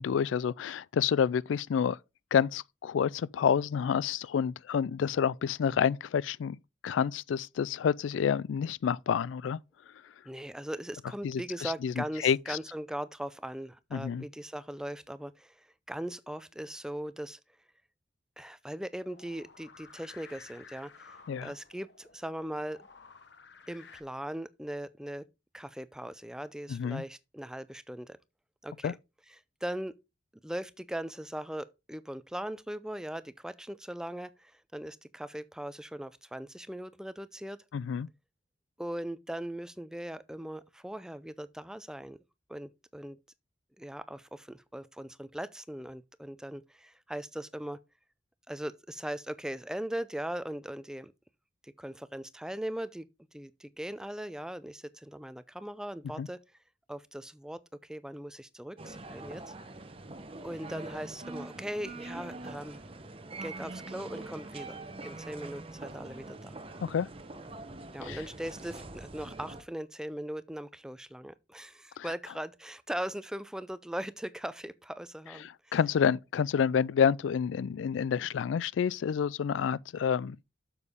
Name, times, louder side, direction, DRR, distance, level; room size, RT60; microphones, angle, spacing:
voice 1, 0.0-2.0 2.3-6.6 6.8-9.6 11.2-12.6 13.9-14.3 21.3-21.5 26.7-27.0 28.8-28.9 37.7-38.1 56.2-56.3 66.8-67.1 68.0-68.2 72.0-72.1 75.4-80.4, left 7 dB, 85° left, 0.3 m, -29 dB
voice 2, 10.3-17.4 18.4-21.1 21.4-22.8 23.7-25.3 25.5-28.2 28.6-29.0 29.6-29.9 30.4-37.6 38.8-42.2 42.5-43.2 43.8-47.8 48.5-51.1 51.6-53.1 53.3-56.4 56.9-59.5 60.4-62.8 63.4-66.6 67.9-75.8, right 1 dB, 5° right, 0.4 m, -39 dB
sound 1, 19.0-24.0, left 5 dB, 65° left, 1.0 m, -54 dB
sound 2, 58.8-69.6, right 2 dB, 30° right, 0.9 m, -44 dB
8.2 x 7.0 x 3.6 m
head